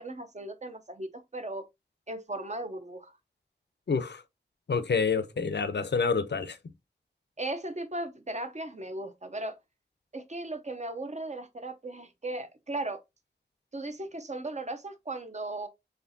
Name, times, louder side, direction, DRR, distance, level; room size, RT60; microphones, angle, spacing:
voice 1, 0.0-1.6 2.1-3.1 7.4-9.6 10.1-13.0 13.7-15.7, right 2 dB, 40° right, 0.7 m, -37 dB
voice 2, 3.9-4.2 4.7-6.6, left 5 dB, 70° left, 0.5 m, -28 dB
4.3 x 3.2 x 2.7 m
wide cardioid pair, 50°, 18 cm